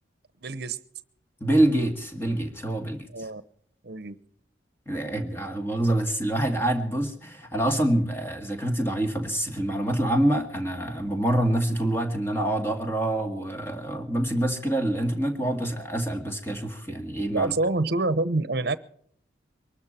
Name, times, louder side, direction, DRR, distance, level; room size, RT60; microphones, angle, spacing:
voice 1, 0.4-0.8 3.1-3.4 3.8-4.2 17.3-18.8, right 2 dB, 55° right, 1.0 m, -26 dB
voice 2, 1.4-3.3 4.9-17.5, right 1 dB, 10° left, 2.1 m, -26 dB
23.5 x 13.0 x 4.4 m
head